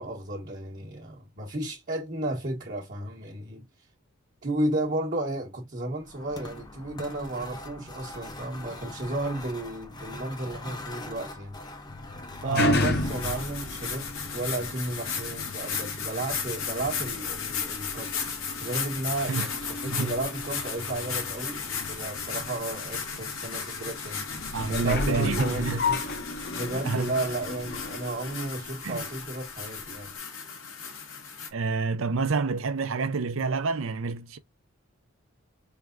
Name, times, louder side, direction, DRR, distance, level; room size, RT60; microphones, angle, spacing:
voice 1, 0.0-3.6 4.4-11.6 12.4-18.1 18.6-21.6 21.9-24.3 24.7-26.0 26.5-30.1, right 2 dB, 40° right, 1.1 m, -33 dB
sound 1, 6.0-15.4, left 2 dB, 20° left, 0.6 m, -42 dB
sound 2, 11.9-29.2 29.8-29.9, left 2 dB, 50° left, 0.9 m, -34 dB
voice 2, 12.4-12.9 19.3-19.5 19.9-20.1 24.5-25.8 26.8-27.1 28.8-29.1 31.5-34.4, right 4 dB, 65° right, 0.6 m, -28 dB
sound 3, 13.0-31.5, left 6 dB, 70° left, 1.3 m, -35 dB
4.6 x 3.3 x 2.4 m
head